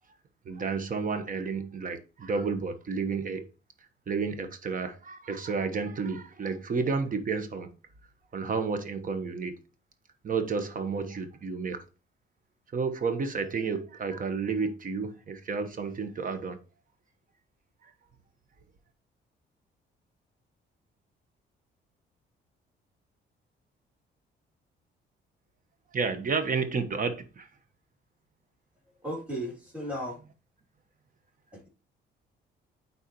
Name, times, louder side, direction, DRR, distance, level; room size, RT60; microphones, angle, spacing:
voice 1, 0.4-3.5 4.1-7.7 8.3-9.6 10.2-11.8 12.7-16.6 17.8-17.9 25.9-27.5, right 5 dB, 45° right, 1.1 m, -31 dB
voice 2, 29.0-30.2 31.5-31.7, equal, 5° right, 2.8 m, -35 dB
8.9 x 4.1 x 3.0 m
cardioid pair, 90°, 20 cm